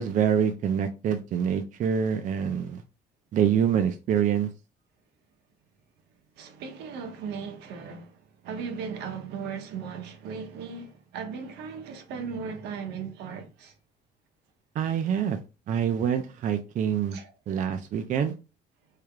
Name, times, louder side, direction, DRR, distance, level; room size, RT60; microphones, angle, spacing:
voice 1, 0.0-2.8 3.3-4.5 14.8-15.4 15.7-17.2 17.5-18.3, right 8 dB, 50° right, 0.4 m, -26 dB
voice 2, 6.4-13.7 17.1-17.3, right 6 dB, 80° right, 0.8 m, -37 dB
3.3 x 3.2 x 2.4 m
cardioid pair, 110°, 17 cm